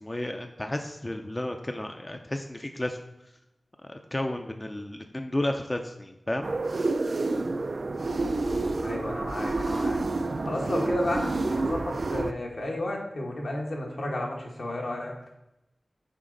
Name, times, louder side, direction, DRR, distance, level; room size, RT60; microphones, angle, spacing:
voice 1, 0.0-3.0 3.8-6.5, left 1 dB, 25° left, 5 dB, 0.4 m, -32 dB
sound 1, 6.4-12.3, right 2 dB, 60° right, 0.3 m, -28 dB
voice 2, 8.8-10.0 10.4-15.2, left 1 dB, 70° left, -1 dB, 1.3 m, -32 dB
7.2 x 5.0 x 3.8 m, 0.91 s
wide cardioid pair, 70°, 0 cm